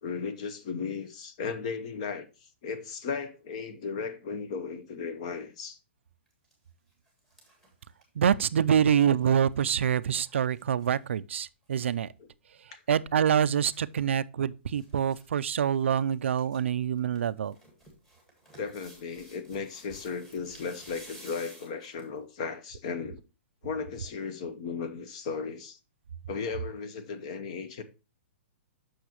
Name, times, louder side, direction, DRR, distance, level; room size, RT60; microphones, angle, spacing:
voice 1, 0.0-2.3 2.6-5.8 8.7-8.8 12.2-12.3 12.7-12.8 18.6-23.2 23.6-25.8 26.3-27.8, left 5 dB, 30° left, 0.8 m, -36 dB
sound 1, 6.3-6.5 6.9-11.1 11.5-11.6 11.7-12.0 13.2-14.2 14.8-15.3 15.5-15.6 16.0-16.6 17.0-22.2 22.7-22.8, right 1 dB, 5° left, 1.7 m, -54 dB
voice 2, 8.2-12.1 12.9-17.6, right 8 dB, 85° right, 0.4 m, -26 dB
8.1 x 6.3 x 3.0 m
hypercardioid pair, 180°, 6 cm